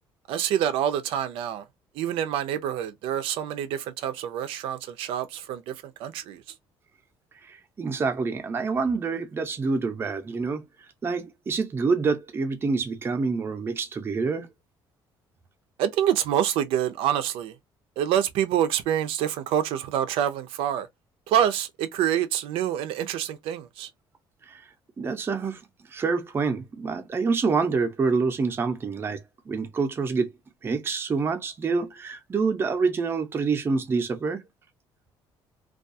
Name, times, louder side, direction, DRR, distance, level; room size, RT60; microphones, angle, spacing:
voice 1, 0.3-1.6 2.0-5.7 6.0-6.4 15.8-17.5 18.0-20.9 21.3-23.9, right 10 dB, 85° right, 0.4 m, -26 dB
voice 2, 7.4-10.6 11.0-14.5 24.5-24.6 25.0-25.6 25.9-29.2 29.5-30.3 30.6-34.4, right 4 dB, 25° right, 0.5 m, -27 dB
2.3 x 2.3 x 2.6 m
cardioid pair, 135°, 9 cm